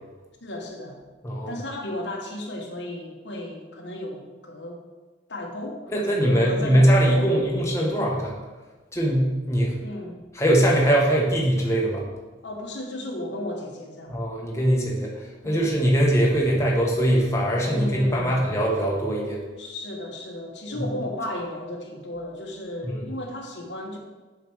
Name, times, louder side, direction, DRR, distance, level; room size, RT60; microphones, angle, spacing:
voice 1, 0.4-1.0 1.5-4.8 5.3-7.3 9.8-10.2 12.4-14.2 15.4-15.8 17.7-18.5 19.6-24.0, left 1 dB, 75° left, 1 dB, 1.2 m, -34 dB
voice 2, 5.9-8.3 8.9-9.8 10.4-12.0 14.1-15.1 15.4-19.4 20.7-20.8 22.8-23.0, right 1 dB, 15° left, -3 dB, 1.2 m, -21 dB
7.4 x 5.0 x 4.8 m, 1.2 s
head